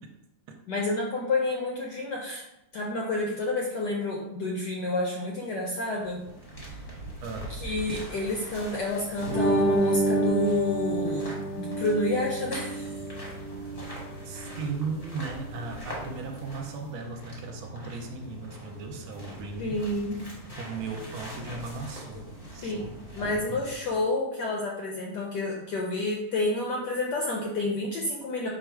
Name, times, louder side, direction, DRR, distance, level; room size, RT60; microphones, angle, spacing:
voice 1, 0.7-2.4 2.7-6.3 6.7-6.8 7.5-12.9 19.6-20.2 22.6-22.8 23.1-28.5, left 2 dB, 75° left, -1 dB, 1.0 m, -29 dB
sound 1, 5.8-24.1, equal, 30° left, 0.7 m, -43 dB
voice 2, 7.2-7.6 14.2-19.8 20.6-23.6, right 4 dB, 80° right, 4 dB, 1.4 m, -37 dB
sound 2, 9.2-16.9, right 1 dB, 20° right, 0.7 m, -29 dB
4.6 x 2.4 x 4.5 m, 0.87 s
omnidirectional pair, 2.4 m